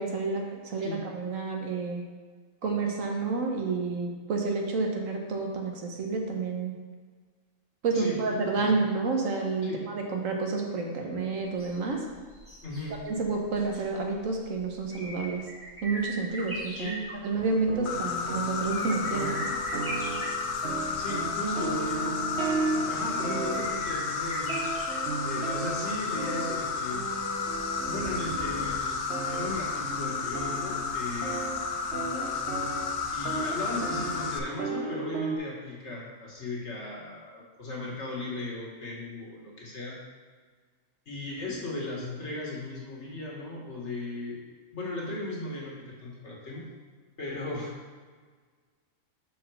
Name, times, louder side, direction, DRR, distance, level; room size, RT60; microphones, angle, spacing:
voice 1, 0.0-2.0 2.6-6.7 7.8-12.0 13.0-15.4 15.8-16.9 17.2-19.3, right 4 dB, 75° right, 1 dB, 1.4 m, -29 dB
voice 2, 7.9-8.7 9.6-9.8 12.6-13.0 16.8-17.1 20.7-22.2 22.9-27.0 27.9-31.4 33.1-39.9 41.1-44.4 44.7-46.7 47.2-47.7, left 2 dB, 55° left, -4 dB, 1.8 m, -36 dB
sound 1, 11.4-27.4 27.7-27.8, right 1 dB, 10° right, 1.4 m, -42 dB
sound 2, 17.4-35.4, right 3 dB, 55° right, 1.1 m, -35 dB
Insect, 17.9-34.4, left 5 dB, 80° left, 1.1 m, -32 dB
5.8 x 4.1 x 6.1 m, 1.5 s
omnidirectional pair, 1.4 m